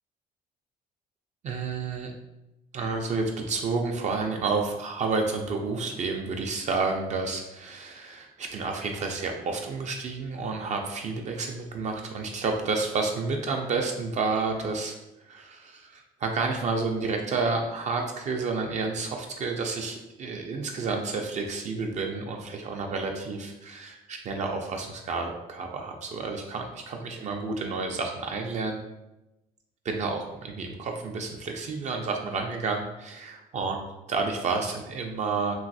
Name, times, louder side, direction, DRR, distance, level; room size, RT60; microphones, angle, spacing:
voice 1, 1.4-2.1 2.7-15.0 15.2-28.8 29.8-33.8 34.1-35.5, right 4 dB, 45° right, 2 dB, 0.4 m, -30 dB
3.1 x 2.6 x 2.6 m, 0.95 s
cardioid pair, 110°, 17 cm